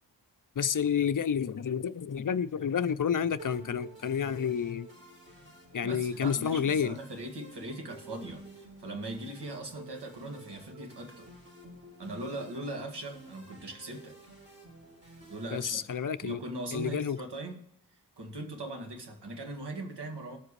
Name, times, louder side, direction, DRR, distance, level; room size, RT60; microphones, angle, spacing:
voice 1, 0.6-4.9 5.7-6.9 15.5-16.4 16.7-17.2, left 7 dB, 50° left, 0.6 m, -29 dB
sound 1, 3.4-16.4, right 2 dB, 30° right, 5.8 m, -52 dB
voice 2, 5.8-11.3 12.0-14.2 15.3-15.8 16.2-17.7 18.2-20.4, right 1 dB, 75° right, 2.2 m, -40 dB
20.5 x 7.6 x 3.2 m
wide cardioid pair, 90°, 41 cm